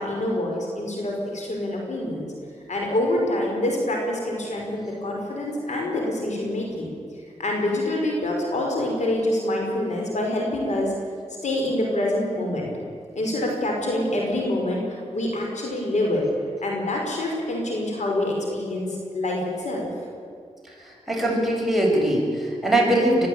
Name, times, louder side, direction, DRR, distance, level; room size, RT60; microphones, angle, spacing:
voice 1, 0.0-2.3 2.7-6.9 7.4-10.9 11.4-12.7 13.1-16.2 16.6-19.9, left 1 dB, 70° left, 0 dB, 5.6 m, -26 dB
voice 2, 21.1-23.3, right 1 dB, ahead, -2 dB, 7.3 m, -21 dB
22.0 x 14.0 x 9.0 m, 2.2 s
cardioid pair, 55°, 12 cm